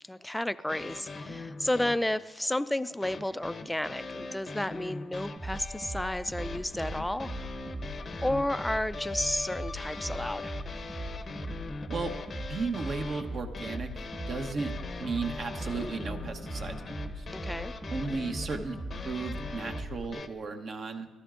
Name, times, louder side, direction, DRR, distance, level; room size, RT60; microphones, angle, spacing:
voice 1, 0.1-7.5 8.2-10.6 17.3-17.7, left 1 dB, 5° left, 15 dB, 0.3 m, -32 dB
sound 1, 0.7-2.1 3.0-20.3, left 3 dB, 45° left, 0.6 m, -41 dB
voice 2, 1.2-1.5 11.9-12.1 12.5-13.9 14.3-17.3 17.9-18.8 19.0-21.1, right 4 dB, 50° right, 6 dB, 0.9 m, -35 dB
sound 2, 5.4-20.1, right 1 dB, 20° right, 1.4 m, -40 dB
14.5 x 12.5 x 2.5 m, 1.2 s
cardioid pair, 90°, 0 cm